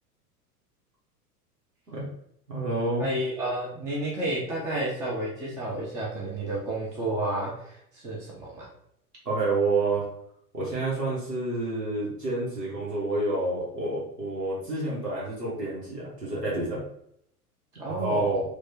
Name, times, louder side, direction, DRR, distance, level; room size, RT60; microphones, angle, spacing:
voice 1, 2.5-3.0 9.2-10.0 10.5-16.8 17.9-18.4, right 2 dB, 85° right, -7 dB, 1.6 m, -28 dB
voice 2, 3.0-8.6 17.7-18.4, right 1 dB, 10° right, -5 dB, 0.3 m, -31 dB
3.2 x 2.7 x 4.2 m, 0.73 s
figure-of-eight pair, 90°, 46 cm